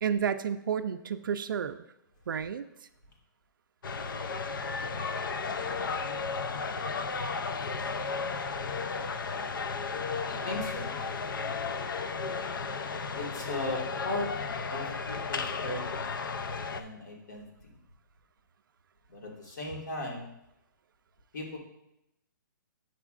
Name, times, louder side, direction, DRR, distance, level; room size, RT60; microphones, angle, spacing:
voice 1, 0.0-1.8 2.3-2.7, right 7 dB, 85° right, 9 dB, 0.4 m, -31 dB
sound 1, 3.8-16.8, left 4 dB, 85° left, 0.5 m, -34 dB
voice 2, 10.3-11.0 13.1-14.3 14.7-16.3 16.7-17.7 19.1-20.3 21.3-21.6, left 2 dB, 65° left, -1 dB, 1.9 m, -37 dB
8.0 x 6.1 x 2.4 m, 0.85 s
hypercardioid pair, 175°, 11 cm